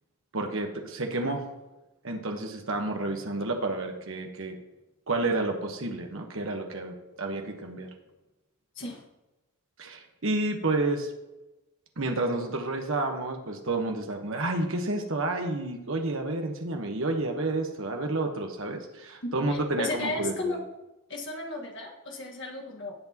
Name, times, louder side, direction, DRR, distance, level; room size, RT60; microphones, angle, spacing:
voice 1, 0.3-1.4 2.0-4.6 5.1-7.9 9.8-11.1 12.0-20.6, right 2 dB, 60° right, 3 dB, 1.2 m, -30 dB
voice 2, 19.2-20.6 21.1-22.9, left 2 dB, 55° left, 0 dB, 1.7 m, -34 dB
18.0 x 6.1 x 3.0 m, 1.0 s
head